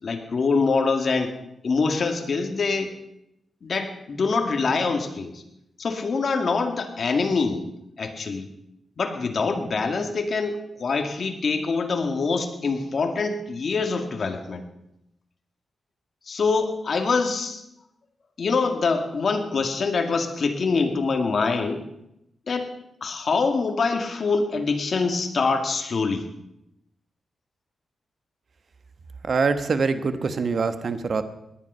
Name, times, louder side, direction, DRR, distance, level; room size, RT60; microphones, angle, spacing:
voice 1, 0.0-1.3 1.6-2.9 3.6-5.4 5.8-7.6 8.0-8.5 9.0-14.6 16.3-17.6 18.4-21.8 22.5-22.7 23.0-26.3, left 4 dB, 55° left, 5 dB, 2.1 m, -24 dB
voice 2, 29.2-31.2, right 4 dB, 55° right, 10 dB, 1.3 m, -24 dB
18.5 x 10.5 x 5.6 m, 0.83 s
cardioid pair, 100°, 0 cm